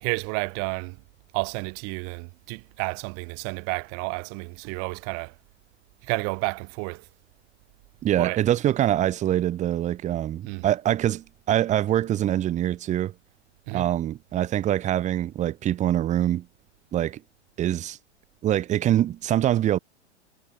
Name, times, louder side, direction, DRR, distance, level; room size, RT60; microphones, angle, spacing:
voice 1, 0.0-1.0 1.3-5.3 6.0-7.0 8.2-8.4 10.5-10.7 13.7-13.9, right 40 dB or more, 35° right, 2.8 m, -31 dB
voice 2, 8.0-13.1 13.7-16.5 16.9-17.2 17.6-18.0 18.4-19.8, right 12 dB, 20° right, 1.4 m, -24 dB
figure-of-eight pair, 105°, 36 cm